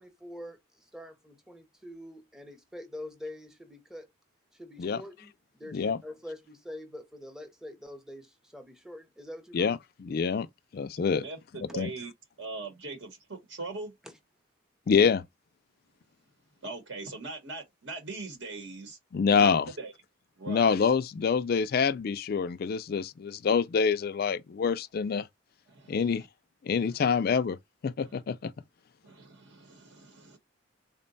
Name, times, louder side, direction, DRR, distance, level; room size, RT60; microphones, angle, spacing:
voice 1, 0.0-4.1 4.5-9.7 14.0-14.2, left 1 dB, ahead, 0.6 m, -45 dB
voice 2, 9.5-10.5 10.7-11.2 11.7-11.9 14.9-15.2 19.1-19.7 20.5-25.3 25.9-26.2 26.6-27.6 27.8-28.5, left 6 dB, 45° left, 0.3 m, -26 dB
voice 3, 11.2-12.1 12.4-13.9 16.6-19.0 19.4-19.9 20.4-20.7 25.7-26.2 26.7-27.0 28.1-28.2 29.0-30.4, right 3 dB, 60° right, 1.0 m, -41 dB
3.8 x 2.1 x 3.9 m
head